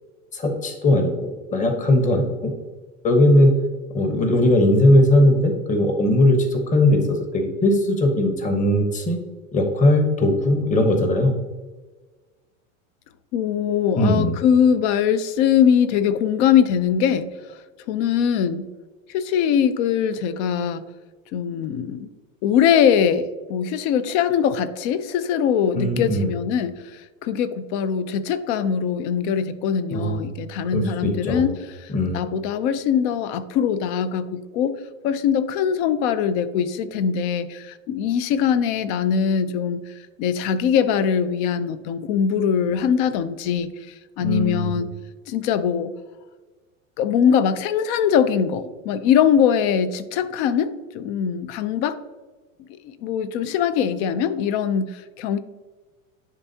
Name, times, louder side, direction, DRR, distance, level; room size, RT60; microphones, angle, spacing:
voice 1, 0.3-1.1 1.5-2.5 3.0-3.6 3.9-9.2 9.5-11.4 14.0-14.4 25.7-26.3 29.9-30.2 30.7-31.5 31.9-32.2 44.2-44.7, left 1 dB, 20° left, 5 dB, 1.0 m, -19 dB
voice 2, 13.3-18.7 19.1-20.8 21.3-22.1 22.4-31.5 31.8-34.7 35.0-44.9 45.3-45.9 47.0-52.0 52.8-55.4, left 8 dB, 55° left, 13 dB, 0.6 m, -22 dB
10.5 x 3.6 x 2.8 m, 1.3 s
hypercardioid pair, 110°, 40 cm